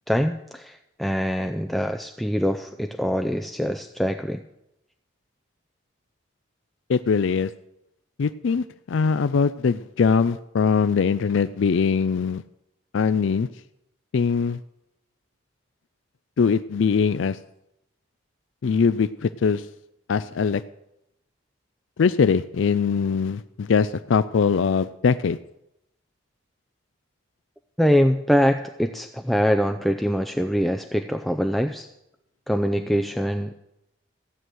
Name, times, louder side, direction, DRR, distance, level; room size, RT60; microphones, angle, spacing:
voice 1, 0.1-4.4 27.8-31.9 32.5-33.5, equal, ahead, 6 dB, 0.4 m, -23 dB
voice 2, 6.9-7.5 8.2-12.4 12.9-13.5 14.1-14.6 16.4-17.4 18.6-19.7 20.1-20.6 22.0-25.4, left 5 dB, 70° left, 13 dB, 0.4 m, -22 dB
15.5 x 6.4 x 9.2 m, 0.85 s
head